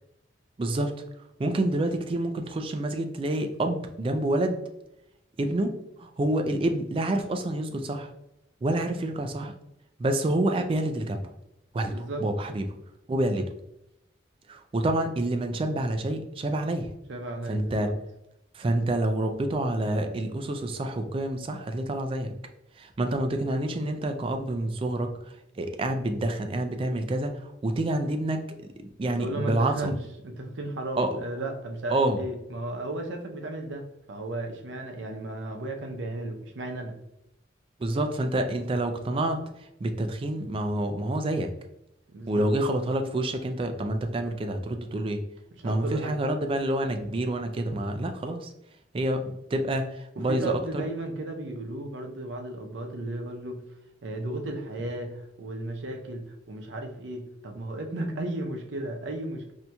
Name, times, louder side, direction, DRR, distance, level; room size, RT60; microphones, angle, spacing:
voice 1, 0.6-0.9 1.4-4.6 5.4-5.7 6.0-8.1 8.6-9.5 10.0-11.3 11.7-12.7 13.1-13.5 14.5-16.9 17.5-17.9 18.5-22.3 22.8-28.4 28.8-29.9 31.0-31.2 31.9-32.2 37.8-41.5 42.3-45.2 45.6-48.5 48.9-50.6, right 1 dB, 30° right, 6 dB, 0.3 m, -28 dB
voice 2, 11.9-12.2 17.1-17.9 29.0-30.0 30.2-36.9 42.1-42.5 45.6-46.2 50.2-53.6 54.0-59.5, right 1 dB, 75° right, 4 dB, 0.6 m, -34 dB
4.1 x 2.7 x 2.2 m, 0.83 s
head